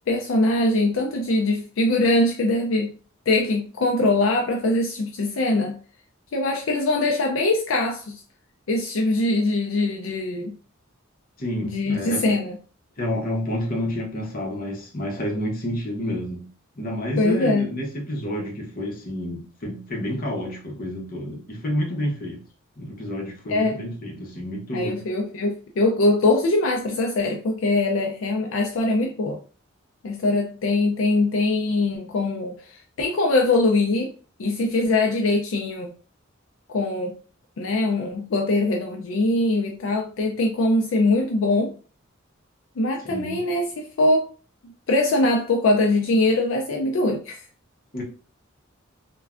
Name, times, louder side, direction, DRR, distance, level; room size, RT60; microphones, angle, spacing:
voice 1, 0.1-2.9 3.3-5.8 6.3-8.2 8.7-10.5 11.7-12.6 17.2-17.7 23.5-23.8 24.7-29.4 30.0-34.1 34.4-35.9 36.7-37.2 37.6-41.7 42.8-44.3 44.9-47.4, left 2 dB, 70° left, 0.4 m, -22 dB
voice 2, 11.4-12.3 13.0-16.5 16.8-22.4 22.8-25.0 43.0-43.4 47.9-48.0, left 1 dB, 45° left, 0.8 m, -29 dB
3.1 x 2.2 x 2.4 m
head